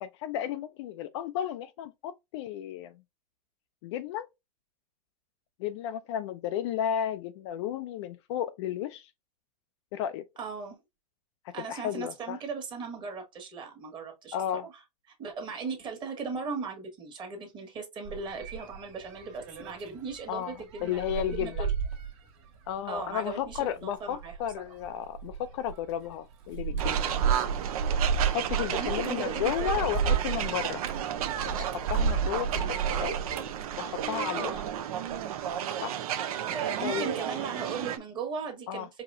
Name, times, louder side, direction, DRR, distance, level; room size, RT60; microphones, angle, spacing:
voice 1, 0.0-2.9 3.8-4.3 5.6-9.1 9.9-10.2 11.6-12.4 14.3-14.7 20.3-20.5 20.8-21.6 22.7-27.2 28.2-30.8 31.4-33.1 33.8-34.5 35.8-35.9 36.8-37.1 38.7-38.9, left 10 dB, 45° left, 0.4 m, -33 dB
voice 2, 10.4-10.8 11.5-14.4 15.2-21.0 21.4-21.7 22.8-24.7 28.7-30.5 32.2-33.1 34.3-34.7 36.5-38.9, right 5 dB, 25° right, 1.5 m, -38 dB
sound 1, 18.0-34.8 35.1-35.5, right 6 dB, 45° right, 1.6 m, -33 dB
sound 2, 26.8-38.0, right 10 dB, 65° right, 0.7 m, -33 dB
4.8 x 2.9 x 2.5 m
supercardioid pair, 145°, 20 cm